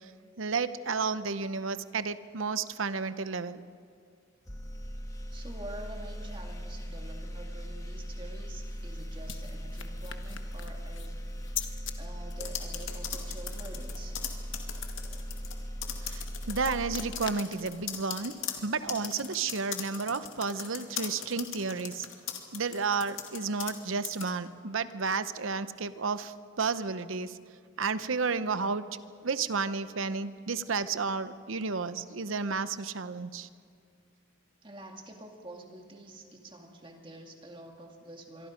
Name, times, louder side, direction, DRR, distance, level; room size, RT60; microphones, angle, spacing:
voice 1, 0.4-3.6 16.1-18.3 18.6-22.1 22.5-27.4 27.8-33.5, right 4 dB, 80° right, 13 dB, 0.8 m, -32 dB
sound 1, 4.4-17.8, equal, 15° left, 1.5 m, -39 dB
voice 2, 5.3-11.2 12.0-14.2 20.6-20.7 34.6-38.5, right 1 dB, 25° right, 2 dB, 2.2 m, -47 dB
sound 2, 8.3-12.0 16.1-19.5, left 10 dB, 70° left, 1.3 m, -44 dB
sound 3, 12.3-15.5 15.8-16.7 17.1-23.8 24.0-24.3, left 9 dB, 90° left, 2.4 m, -38 dB
26.0 x 23.0 x 5.2 m, 2.1 s
head